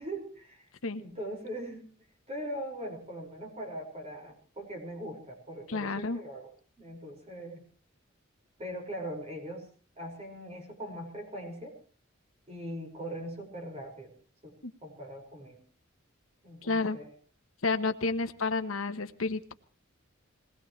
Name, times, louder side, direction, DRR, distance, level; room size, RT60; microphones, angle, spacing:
voice 1, 0.0-0.7 1.0-1.9 2.3-6.5 6.8-7.6 8.6-9.7 10.0-11.8 12.5-14.1 14.4-14.5 14.8-15.6 16.4-17.1, equal, 30° right, 1 dB, 5.4 m, -40 dB
voice 2, 5.7-6.2 14.6-14.7 16.6-17.0 17.6-19.5, left 3 dB, 85° left, 9 dB, 1.1 m, -30 dB
22.0 x 19.0 x 3.2 m, 0.41 s
head